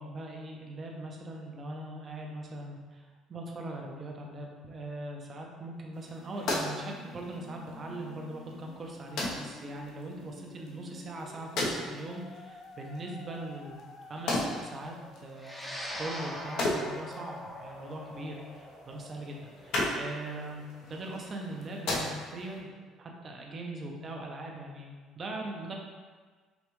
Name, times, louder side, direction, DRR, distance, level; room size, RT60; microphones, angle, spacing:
voice 1, 0.0-14.9 15.2-22.7 23.0-25.7, right 1 dB, 40° right, 0 dB, 0.8 m, -41 dB
sound 1, 5.9-22.6, left 1 dB, 70° left, 0.9 m, -38 dB
Musical instrument, 5.9-18.9, left 3 dB, 35° left, 0.4 m, -52 dB
sound 2, 15.4-23.9, equal, 5° left, 0.8 m, -44 dB
5.2 x 2.6 x 3.1 m, 1.4 s
supercardioid pair, 95°, 0 cm